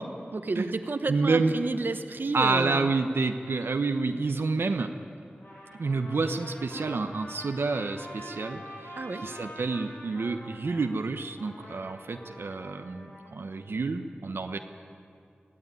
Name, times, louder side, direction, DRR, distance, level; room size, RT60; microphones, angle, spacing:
voice 1, 0.3-2.9 9.0-9.2, right 3 dB, 60° right, 8 dB, 1.1 m, -31 dB
voice 2, 1.1-1.5 2.3-4.9 5.8-8.9 9.2-14.6, right 3 dB, 85° right, 6 dB, 1.0 m, -29 dB
Trumpet, 5.3-10.9 11.4-13.3, equal, 70° left, 6.8 m, -45 dB
23.0 x 15.0 x 9.7 m, 2.4 s
wide cardioid pair, 80°, 4 cm